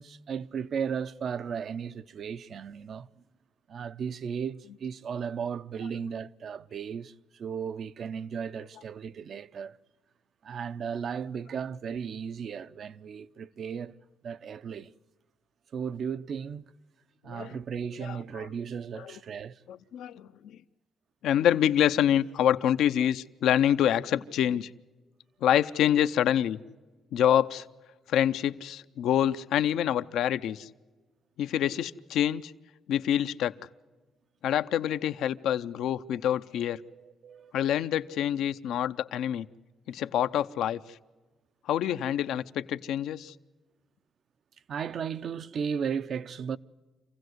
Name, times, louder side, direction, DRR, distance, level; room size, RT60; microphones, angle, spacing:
voice 1, 0.0-3.1 3.7-9.8 10.4-14.0 14.2-14.9 15.7-16.7 17.2-19.6 36.1-36.2 36.9-37.6 44.7-46.6, right 7 dB, 55° right, 0.6 m, -35 dB
voice 2, 17.3-17.6 18.0-18.5 19.0-19.1 19.7-20.6 21.2-24.7 25.4-26.6 27.1-27.6 28.1-30.7 31.4-32.5 32.9-33.5 34.4-36.8 37.5-39.5 39.9-40.8 41.7-43.3, left 10 dB, 80° left, 0.6 m, -26 dB
26.5 x 16.0 x 8.0 m
cardioid pair, 90°, 0 cm